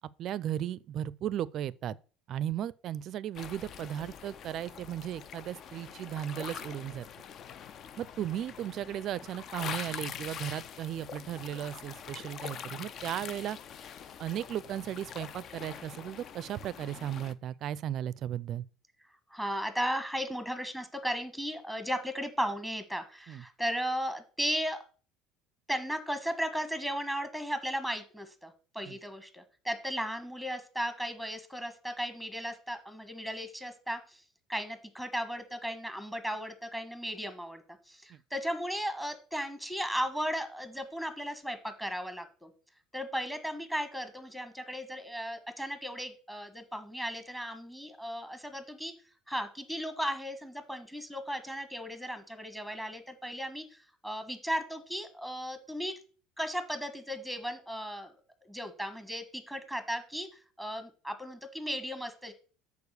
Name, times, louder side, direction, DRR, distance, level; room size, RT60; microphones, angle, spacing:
voice 1, 0.2-2.0 2.3-7.1 8.0-13.6 14.2-18.7 23.3-23.4 28.9-29.0 38.1-38.2, right 11 dB, 50° right, 0.4 m, -36 dB
sound 1, 3.3-17.3, left 8 dB, 45° left, 0.5 m, -44 dB
voice 2, 19.3-24.8 25.7-34.2 34.5-42.5 42.9-48.9 49.3-55.9 56.4-62.3, equal, 5° left, 1.4 m, -36 dB
6.9 x 4.7 x 6.6 m
hypercardioid pair, 65°, 0 cm